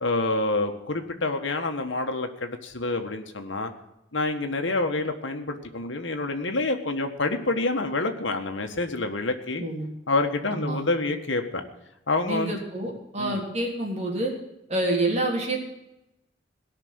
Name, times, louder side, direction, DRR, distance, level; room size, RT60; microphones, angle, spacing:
voice 1, 0.0-3.7 4.1-9.6 10.1-11.6 12.1-12.6 13.2-13.4, left 2 dB, 75° left, 5 dB, 1.6 m, -27 dB
voice 2, 10.5-10.9 12.2-14.3 14.7-15.6, right 2 dB, 35° right, 0 dB, 3.4 m, -27 dB
18.0 x 6.1 x 9.6 m, 0.90 s
head